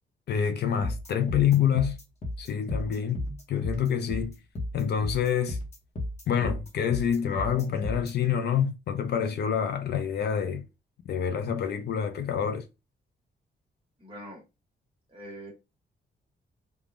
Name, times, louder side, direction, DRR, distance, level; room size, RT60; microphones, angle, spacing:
voice 1, 0.3-2.0 2.4-3.2 3.5-4.4 4.7-5.6 6.3-10.7 11.1-12.7, left 8 dB, 65° left, 0.4 m, -27 dB
sound 1, 0.8-8.1, left 1 dB, 35° left, 0.9 m, -33 dB
voice 2, 14.0-14.4 15.1-15.5, right 1 dB, 30° right, 1.2 m, -43 dB
3.3 x 2.2 x 2.5 m
wide cardioid pair, 170°, 19 cm